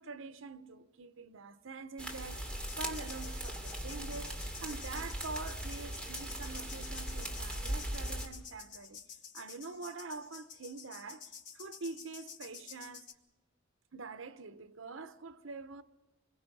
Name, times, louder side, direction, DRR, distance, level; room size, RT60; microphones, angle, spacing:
voice 1, 0.0-2.5 2.8-9.0 9.3-13.1 13.9-15.8, right 3 dB, 75° right, 0.9 m, -45 dB
sound 1, 2.0-8.3, right 1 dB, 5° left, 2.6 m, -39 dB
sound 2, 2.6-13.1, left 7 dB, 65° left, 1.4 m, -51 dB
26.5 x 21.5 x 5.4 m
head